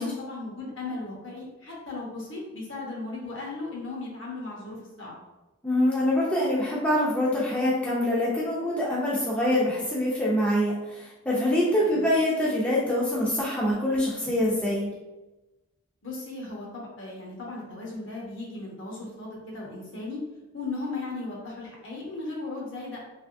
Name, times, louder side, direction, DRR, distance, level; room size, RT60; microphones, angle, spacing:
voice 1, 0.0-5.2 11.8-12.1 16.0-20.2 20.5-23.0, left 3 dB, 60° left, -3 dB, 1.0 m, -36 dB
voice 2, 5.6-14.9, left 1 dB, 5° left, -7 dB, 0.5 m, -25 dB
3.4 x 3.1 x 2.5 m, 1.1 s
head